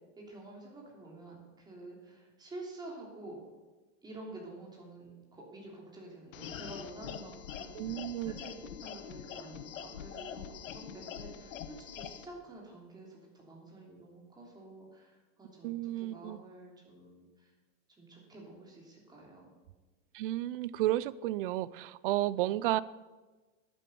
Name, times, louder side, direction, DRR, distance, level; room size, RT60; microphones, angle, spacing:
voice 1, 0.2-3.4 4.0-17.3 18.0-19.5, right 2 dB, 10° right, -2 dB, 3.2 m, -49 dB
sound 1, 6.3-12.3, left 9 dB, 90° left, 1.2 m, -44 dB
voice 2, 7.7-8.3 15.6-16.4 20.1-22.8, right 15 dB, 45° right, 19 dB, 0.5 m, -32 dB
11.0 x 9.4 x 7.0 m, 1.2 s
supercardioid pair, 155°, 38 cm